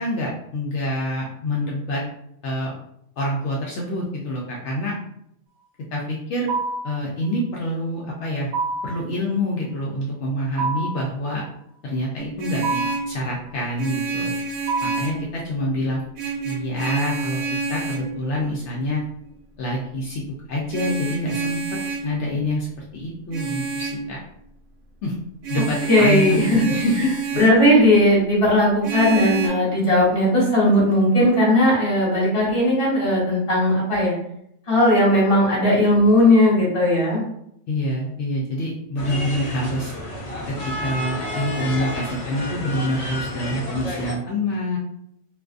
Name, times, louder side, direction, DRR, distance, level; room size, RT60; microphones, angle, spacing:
voice 1, 0.0-2.0 2.4-2.7 3.2-5.0 5.9-6.5 6.8-8.5 8.8-11.4 11.8-14.3 14.8-16.0 16.4-17.4 17.7-19.0 19.6-20.2 20.5-21.6 22.0-24.2 25.0-25.1 25.5-27.0 27.7-27.8 37.7-39.9 40.6-44.8, left 1 dB, 70° left, -4 dB, 0.8 m, -26 dB
sound 1, 6.5-7.0 8.5-9.0 10.6-11.1 12.6-13.1 14.7-15.2, right 3 dB, 55° right, 0.8 m, -26 dB
Vehicle horn car horn honking, 12.2-13.1 13.8-15.3 16.1-18.1 20.7-22.1 23.3-24.0 25.4-27.6 28.8-29.5, right 5 dB, 85° right, 1.0 m, -28 dB
voice 2, 25.9-26.8 27.4-34.2 34.7-37.2, left 1 dB, 25° left, -6 dB, 1.1 m, -17 dB
sound 2, 39.0-44.1, left 1 dB, 45° left, 0.5 m, -30 dB
2.5 x 2.3 x 2.4 m, 0.75 s
omnidirectional pair, 1.3 m